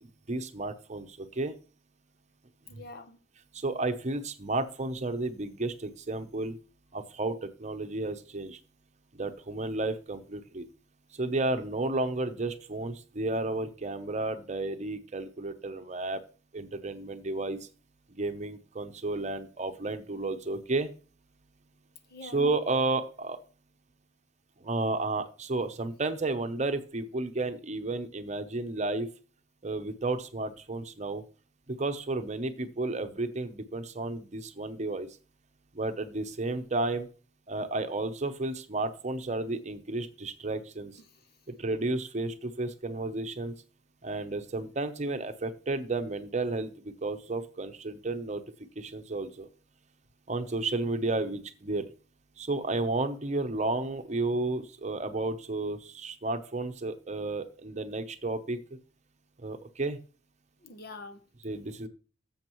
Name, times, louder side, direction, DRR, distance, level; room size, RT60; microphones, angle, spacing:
voice 1, 0.0-1.6 2.7-2.8 3.5-6.6 6.9-8.6 9.1-10.7 11.1-16.2 16.5-17.7 18.1-20.9 22.2-23.4 24.6-29.1 29.6-31.2 31.7-35.1 35.7-37.1 37.5-41.0 41.6-43.5 44.0-48.4 48.8-49.5 50.3-51.9 52.4-58.6 59.4-60.0 61.4-61.9, right 2 dB, 40° right, 0.8 m, -32 dB
voice 2, 2.7-3.2 22.1-22.4 41.0-41.2 60.6-61.2, left 3 dB, 55° left, 1.0 m, -46 dB
13.0 x 7.2 x 3.1 m
head